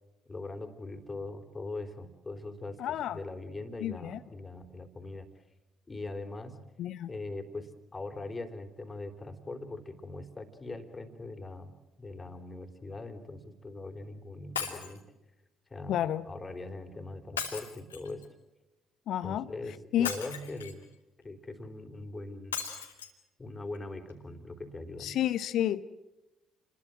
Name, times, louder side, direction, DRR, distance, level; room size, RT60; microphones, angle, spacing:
voice 1, 0.3-5.4 5.9-6.6 7.1-11.7 12.0-15.0 15.7-18.3 19.2-20.9 21.2-22.6 23.4-25.2, left 2 dB, 25° left, 3.8 m, -41 dB
voice 2, 2.8-3.2 3.8-4.2 6.8-7.1 15.9-16.3 19.1-19.5 19.9-20.1 25.0-25.9, left 11 dB, 55° left, 0.8 m, -30 dB
Shatter, 14.6-15.0 17.4-18.2 20.0-20.8 22.5-23.1 23.7-23.8 24.1-24.2, left 7 dB, 80° left, 2.7 m, -37 dB
30.0 x 22.0 x 7.8 m
figure-of-eight pair, 45°, 0 cm